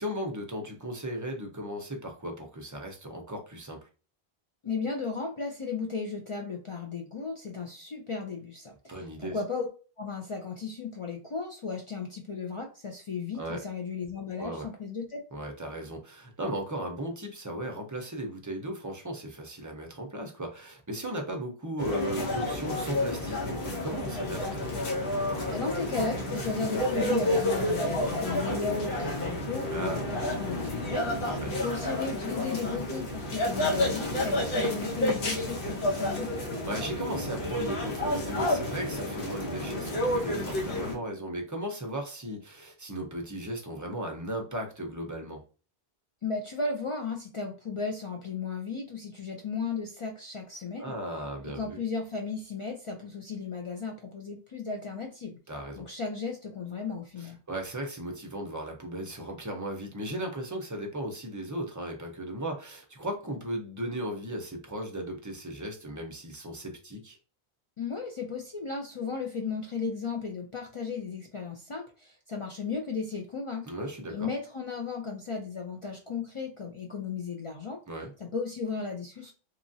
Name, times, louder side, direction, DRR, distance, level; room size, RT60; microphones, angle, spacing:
voice 1, 0.0-3.8 8.9-9.4 13.3-13.6 14.4-14.7 15.3-24.6 29.7-30.0 31.3-31.6 36.7-45.4 50.8-51.8 55.5-55.8 57.2-67.2 73.7-74.3 77.9-78.1, right 1 dB, 25° right, 2 dB, 0.5 m, -36 dB
voice 2, 4.6-9.7 10.0-15.2 25.5-31.1 31.6-36.3 46.2-50.9 51.4-55.4 55.8-57.4 67.8-73.7 74.1-77.8 78.2-79.3, left 4 dB, 50° left, 1 dB, 0.3 m, -35 dB
sound 1, 21.8-40.9, left 1 dB, 80° left, 1.1 m, -30 dB
3.0 x 2.4 x 2.6 m, 0.35 s
omnidirectional pair, 1.0 m